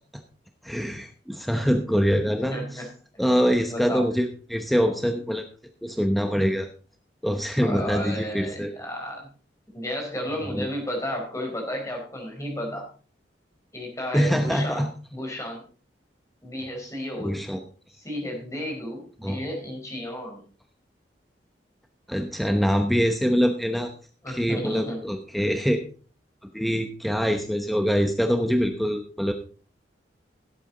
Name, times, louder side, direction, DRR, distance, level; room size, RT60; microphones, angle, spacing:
voice 1, 0.6-2.8 3.2-5.4 5.8-6.7 7.2-8.7 10.5-10.7 14.1-14.9 17.2-17.6 19.2-19.4 22.1-23.9 24.3-25.8 26.5-29.3, equal, ahead, 5 dB, 0.9 m, -24 dB
voice 2, 2.5-2.9 3.7-4.0 7.6-9.3 9.7-12.9 13.7-15.6 16.4-17.3 17.9-20.4 24.2-25.0, equal, 15° left, 1 dB, 4.5 m, -33 dB
17.0 x 8.5 x 3.9 m, 0.40 s
head